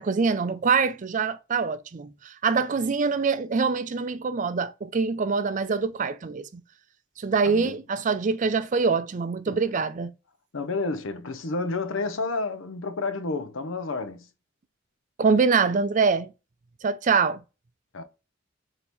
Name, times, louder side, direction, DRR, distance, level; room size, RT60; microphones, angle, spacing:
voice 1, 0.0-6.6 7.2-10.1 15.2-16.3 16.8-17.4, right 5 dB, 40° right, 0.4 m, -24 dB
voice 2, 10.5-14.3 17.9-18.0, left 3 dB, 80° left, 0.7 m, -30 dB
4.3 x 2.8 x 3.4 m
head